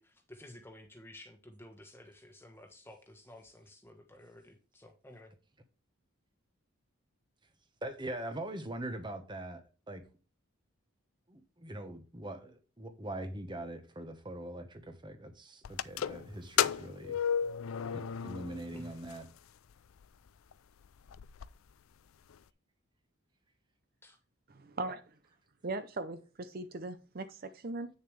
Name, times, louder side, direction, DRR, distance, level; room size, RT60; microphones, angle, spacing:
voice 1, 0.0-5.3 18.7-18.9 24.0-24.2, left 1 dB, 10° left, 1.2 m, -53 dB
voice 2, 7.8-10.0 11.3-17.2 17.9-19.2, right 1 dB, 20° right, 1.1 m, -42 dB
sound 1, 15.7-18.8 19.1-19.2 20.0-20.1 20.5-20.6 20.8-21.5, left 8 dB, 75° left, 0.4 m, -33 dB
voice 3, 24.5-25.0 25.6-27.9, right 2 dB, 45° right, 0.6 m, -39 dB
8.8 x 6.7 x 3.3 m
head